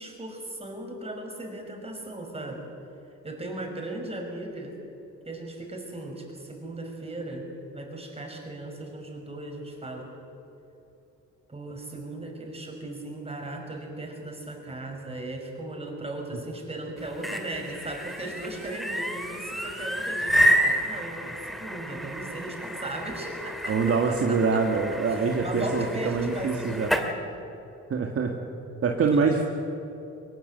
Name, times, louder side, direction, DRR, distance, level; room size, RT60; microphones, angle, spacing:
voice 1, 0.0-2.7 3.2-4.8 5.3-7.4 7.7-10.1 11.5-24.6 25.1-27.2 29.1-29.2, right 1 dB, 20° right, 2 dB, 5.9 m, -37 dB
sound 1, 17.0-27.1, equal, ahead, 2.2 m, -29 dB
voice 2, 23.7-26.9 27.9-28.3 28.8-29.4, right 4 dB, 50° right, 1 dB, 2.1 m, -24 dB
21.5 x 19.5 x 8.2 m, 2.9 s
cardioid pair, 90°, 30 cm